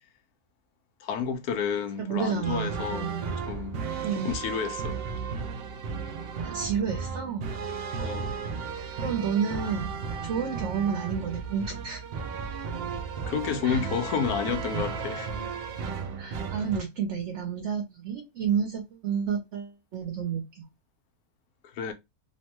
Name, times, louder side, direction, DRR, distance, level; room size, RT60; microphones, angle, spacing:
voice 1, 1.0-3.2 3.5-3.8 4.2-5.0 8.0-8.3 13.3-15.3 21.7-21.9, left 7 dB, 90° left, 1.1 m, -30 dB
voice 2, 2.0-3.3 4.0-4.4 6.4-7.5 9.0-12.0 13.6-13.8 16.2-20.6, right 7 dB, 60° right, 0.9 m, -30 dB
sound 1, 2.4-16.8, right 5 dB, 80° right, 0.5 m, -34 dB
2.9 x 2.1 x 2.9 m
omnidirectional pair, 1.6 m